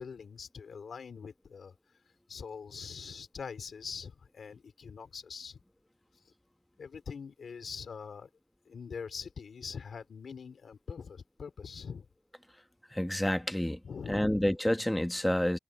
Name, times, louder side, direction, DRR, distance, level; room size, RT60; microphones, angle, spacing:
voice 1, 0.0-1.8 2.3-5.6 6.3-6.4 6.8-8.3 8.7-12.1 13.8-14.4, left 6 dB, 90° left, 4.0 m, -43 dB
voice 2, 12.9-13.8 14.1-15.6, left 1 dB, 10° left, 1.4 m, -29 dB
cardioid pair, 45°, 0 cm